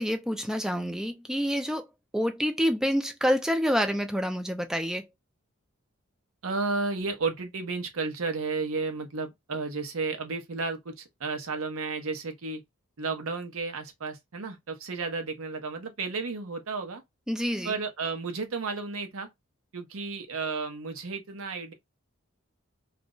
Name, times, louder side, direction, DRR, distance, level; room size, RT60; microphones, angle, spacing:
voice 1, 0.0-1.9 2.1-5.1 17.3-17.7, equal, 5° right, 0.3 m, -27 dB
voice 2, 6.4-12.6 13.0-17.0 17.6-19.3 19.7-21.7, right 4 dB, 85° right, 0.8 m, -32 dB
2.5 x 2.0 x 3.6 m
head